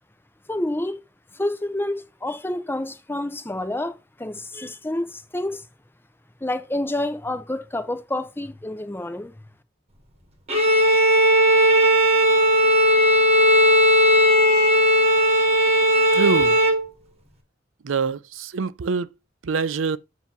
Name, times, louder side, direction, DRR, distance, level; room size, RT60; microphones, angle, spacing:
voice 1, 0.5-1.0 1.3-5.6 6.4-9.3, left 1 dB, 10° left, 0.7 m, -28 dB
Bowed string instrument, 10.5-16.9, equal, 35° right, 1.4 m, -17 dB
voice 2, 16.1-16.6 17.8-19.1 19.4-20.0, right 5 dB, 80° right, 0.5 m, -24 dB
8.1 x 3.0 x 5.9 m
head